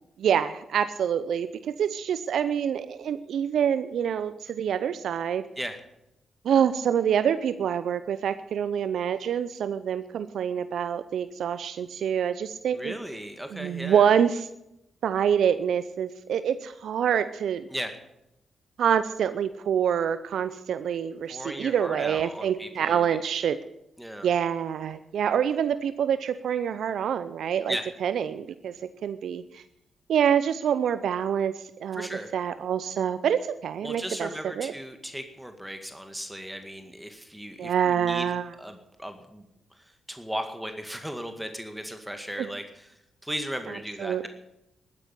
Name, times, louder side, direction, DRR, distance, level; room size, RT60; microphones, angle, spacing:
voice 1, 0.2-5.5 6.4-12.9 13.5-14.5 15.0-17.7 18.8-23.6 24.2-27.8 28.0-28.8 29.0-29.6 30.1-34.3 34.6-34.7 37.6-38.5 42.4-42.5 44.0-44.3, right 8 dB, 70° right, 13 dB, 0.6 m, -26 dB
voice 2, 12.7-14.1 17.7-17.9 21.3-23.2 24.0-24.3 27.7-27.9 31.9-32.3 33.8-38.3 38.6-39.4 39.8-42.9 43.2-44.3, equal, 5° right, 6 dB, 2.0 m, -36 dB
12.5 x 9.8 x 9.9 m, 0.86 s
supercardioid pair, 45°, 0 cm